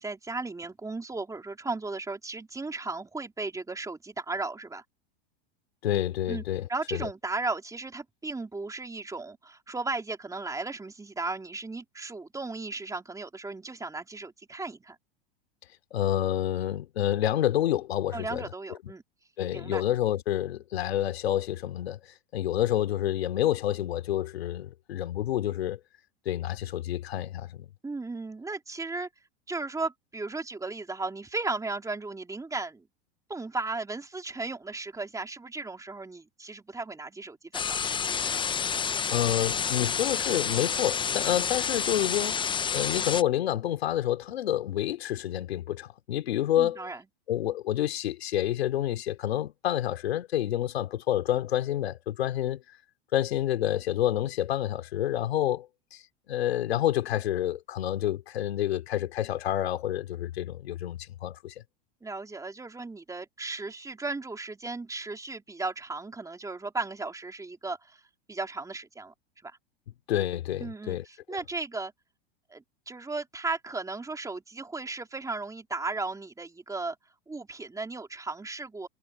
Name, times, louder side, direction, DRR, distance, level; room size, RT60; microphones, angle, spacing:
voice 1, 0.0-4.8 6.3-6.4 6.7-15.0 18.1-19.0 19.5-19.8 27.8-29.1 29.5-32.9 33.3-37.8 46.6-47.0 62.0-68.0 68.3-69.1 69.4-69.5 70.6-71.9 72.5-77.0 77.3-78.9, right 3 dB, 10° right, 3.7 m, -35 dB
voice 2, 5.8-7.1 15.9-18.5 18.8-18.9 19.4-22.0 22.3-25.8 26.2-27.7 39.1-42.4 42.7-46.9 47.3-52.6 53.1-61.5 70.1-71.0, left 12 dB, 85° left, 3.2 m, -28 dB
sound 1, 37.5-43.2, left 7 dB, 15° left, 0.7 m, -29 dB
hypercardioid pair, 115°, 31 cm